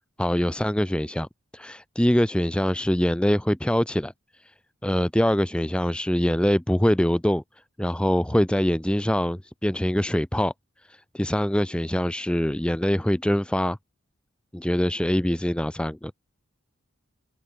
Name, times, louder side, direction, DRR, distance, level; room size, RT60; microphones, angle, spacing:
voice 1, 0.2-1.3 1.5-4.1 4.4-4.5 4.8-7.4 7.8-10.5 10.9-13.8 14.5-16.1, equal, 5° left, 0.5 m, -24 dB
head